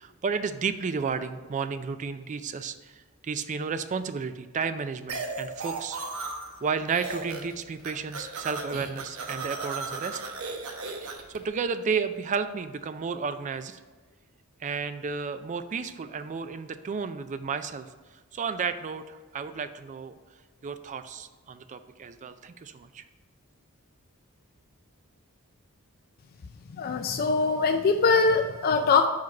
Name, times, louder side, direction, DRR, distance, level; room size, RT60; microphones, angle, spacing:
voice 1, 0.0-3.0 3.2-6.0 6.6-10.2 11.0-13.8 14.6-17.9 18.3-20.1 20.6-23.0, right 5 dB, 35° right, 11 dB, 0.3 m, -32 dB
sound 1, 5.1-6.6 6.9-7.5 7.8-11.4, right 3 dB, 70° right, 0.9 m, -36 dB
voice 2, 26.8-29.1, left 4 dB, 45° left, 5 dB, 0.3 m, -22 dB
4.8 x 4.6 x 5.8 m, 1.4 s
head